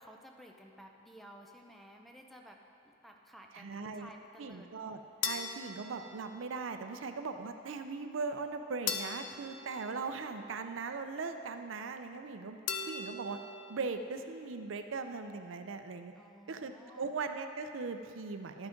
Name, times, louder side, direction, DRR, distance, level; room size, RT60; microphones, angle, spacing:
voice 1, 0.0-4.7 16.1-17.1, equal, ahead, 2 dB, 0.6 m, -54 dB
voice 2, 3.5-4.1 4.4-12.6 12.9-13.4 13.7-16.1 16.5-18.7, right 4 dB, 85° right, 7 dB, 0.5 m, -39 dB
sound 1, 5.2-6.7 8.9-10.7 12.7-13.8, left 6 dB, 85° left, 0.6 m, -40 dB
11.5 x 6.0 x 5.1 m, 2.6 s
head